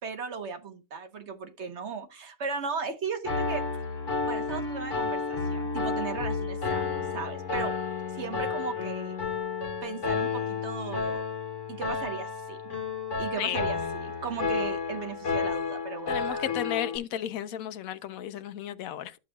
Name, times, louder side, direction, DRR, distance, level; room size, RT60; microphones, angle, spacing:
voice 1, 0.0-3.6 4.3-7.7 8.1-9.2 9.8-11.3 11.7-12.7 13.2-16.5, right 5 dB, 50° right, 1.2 m, -37 dB
Piano, 3.2-17.0, left 4 dB, 55° left, 2.1 m, -31 dB
voice 2, 16.1-19.2, left 10 dB, 70° left, 1.1 m, -33 dB
11.5 x 7.6 x 2.3 m
omnidirectional pair, 1.6 m